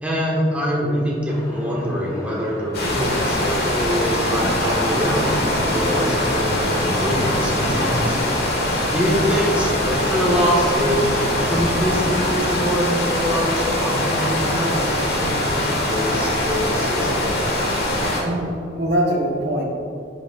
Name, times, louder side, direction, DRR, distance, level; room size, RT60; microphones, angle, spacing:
voice 1, 0.0-8.2 8.9-17.3, equal, 10° right, -4 dB, 1.3 m, -24 dB
sound 1, 1.3-8.3, equal, 20° left, 1.0 m, -31 dB
sound 2, 2.7-18.2, left 1 dB, 60° left, 1.6 m, -22 dB
voice 2, 18.2-19.6, right 1 dB, 65° right, -1 dB, 1.1 m, -23 dB
10.5 x 6.0 x 2.4 m, 2.6 s
head